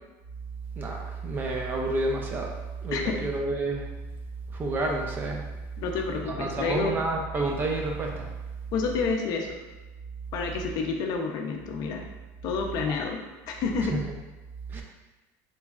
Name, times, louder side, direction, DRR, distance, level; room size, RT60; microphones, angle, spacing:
voice 1, 0.8-2.5 2.8-3.9 4.5-5.4 6.3-8.3 13.9-14.0 14.7-14.8, right 2 dB, 25° right, 1 dB, 0.5 m, -29 dB
voice 2, 5.8-7.0 8.7-9.6 10.3-12.0 12.4-13.2 13.5-14.0, left 4 dB, 55° left, 2 dB, 0.5 m, -29 dB
3.4 x 3.0 x 2.3 m, 1.1 s
cardioid pair, 140°, 8 cm